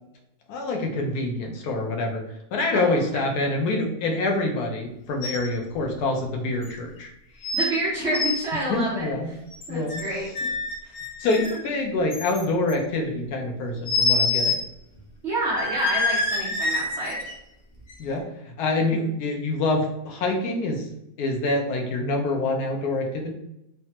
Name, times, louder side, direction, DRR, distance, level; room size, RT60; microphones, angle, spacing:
voice 1, 0.5-2.2 2.5-7.1 7.4-7.5 8.5-9.3 9.7-10.1 11.2-14.6 18.0-18.3 18.6-20.9 21.2-23.3, left 2 dB, 75° left, 2 dB, 1.1 m, -26 dB
sound 1, 5.2-5.5 5.8-5.9 6.6-6.7 7.4-7.7 8.0-8.4 9.5-10.0 10.3-11.6 12.1-12.7 13.9-14.6 15.0-15.1 15.5-17.3 17.9-18.0, left 3 dB, 60° left, 0.6 m, -26 dB
voice 2, 7.5-9.1 9.7-10.3 10.8-10.9 15.2-17.3 18.9-19.0, right 1 dB, 60° right, -6 dB, 0.7 m, -28 dB
3.3 x 2.0 x 2.8 m, 0.85 s
omnidirectional pair, 1.8 m